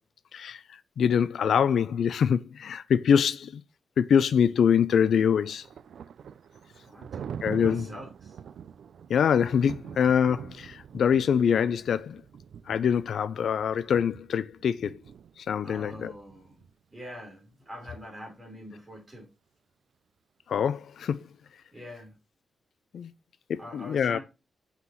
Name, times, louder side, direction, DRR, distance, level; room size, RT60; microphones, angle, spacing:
voice 1, 0.3-3.6 4.0-5.7 7.4-7.9 9.1-12.2 12.7-15.0 15.4-16.1 20.5-21.2 22.9-23.1 23.5-24.2, left 7 dB, 75° left, 0.4 m, -24 dB
Thunder, 4.9-16.7, right 7 dB, 80° right, 0.4 m, -44 dB
voice 2, 6.8-7.3 7.6-8.4 15.6-16.6 16.9-19.3 21.7-22.2 23.6-24.2, equal, 20° right, 3.7 m, -44 dB
5.8 x 5.8 x 3.0 m
wide cardioid pair, 150°, 0 cm